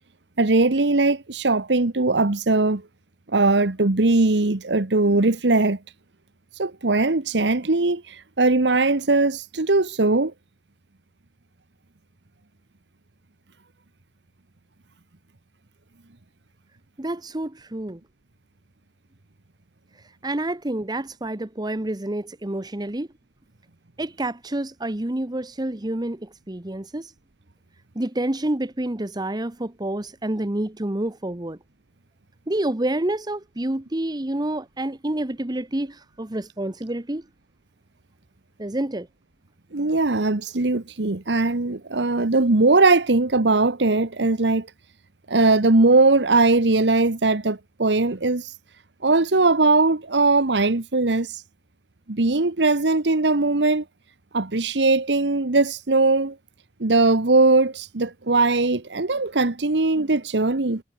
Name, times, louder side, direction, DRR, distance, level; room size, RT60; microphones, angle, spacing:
voice 1, 0.4-2.8 3.3-5.8 6.5-10.3 39.7-44.7 45.3-48.5 49.0-51.4 52.1-53.8 54.3-56.4 56.8-60.8, right 3 dB, 80° right, 1.3 m, -20 dB
voice 2, 17.0-18.0 20.2-23.1 24.0-27.1 27.9-31.6 32.5-37.2 38.6-39.1, right 1 dB, 25° right, 1.1 m, -28 dB
head